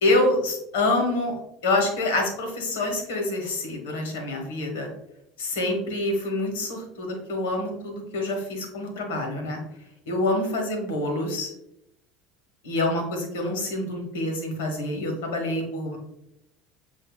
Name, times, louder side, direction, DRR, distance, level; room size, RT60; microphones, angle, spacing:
voice 1, 0.0-4.9 5.4-9.6 10.1-11.5 12.6-16.0, left 2 dB, 80° left, 3 dB, 1.3 m, -26 dB
7.7 x 2.7 x 2.3 m, 0.81 s
hypercardioid pair, 75°, 0 cm